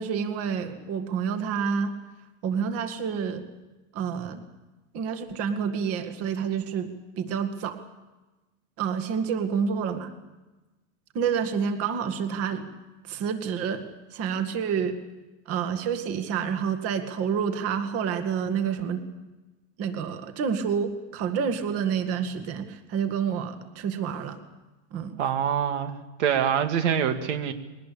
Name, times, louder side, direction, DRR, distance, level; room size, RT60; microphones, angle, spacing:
voice 1, 0.0-1.9 2.4-3.5 3.9-4.4 4.9-7.8 8.8-10.1 11.1-12.7 13.1-13.8 14.1-15.0 15.5-19.1 19.8-24.4 24.9-25.2, right 7 dB, 40° right, 7 dB, 2.0 m, -28 dB
voice 2, 25.2-27.5, right 8 dB, 85° right, 7 dB, 2.1 m, -25 dB
21.5 x 19.0 x 8.6 m, 1.1 s
supercardioid pair, 155°, 35 cm